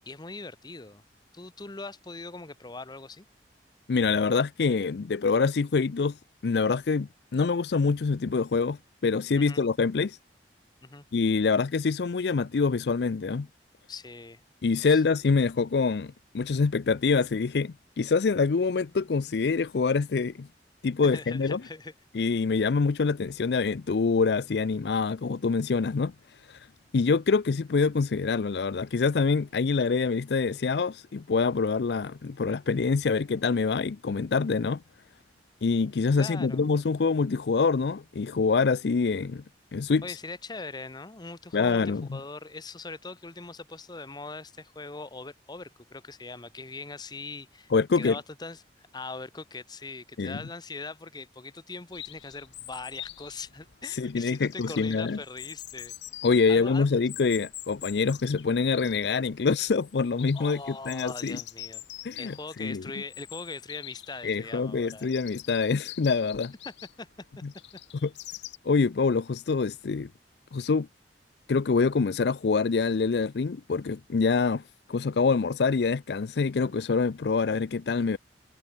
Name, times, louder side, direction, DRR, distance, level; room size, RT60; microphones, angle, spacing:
voice 1, 0.1-1.0 1.3-3.3 9.4-9.6 10.8-11.0 13.9-14.4 14.9-15.2 21.0-21.9 36.2-36.7 40.0-47.7 48.0-56.9 60.3-61.9 62.2-65.1 66.6-67.1 67.3-67.4, left 3 dB, 25° left, 1.0 m, -41 dB
voice 2, 3.9-6.2 6.4-10.2 11.1-13.5 14.6-20.5 20.8-21.6 22.1-26.1 26.5-26.6 26.9-34.8 35.6-39.4 39.7-40.0 41.5-42.2 47.7-48.2 50.2-50.4 54.0-55.2 56.2-61.4 62.0-62.8 64.2-66.5 67.4-67.5 68.0-68.1 68.6-70.1 70.5-70.9 71.5-74.6 74.9-78.2, left 4 dB, 65° left, 0.5 m, -25 dB
Chirp tweet, 51.9-68.6, left 14 dB, 85° left, 1.1 m, -45 dB
head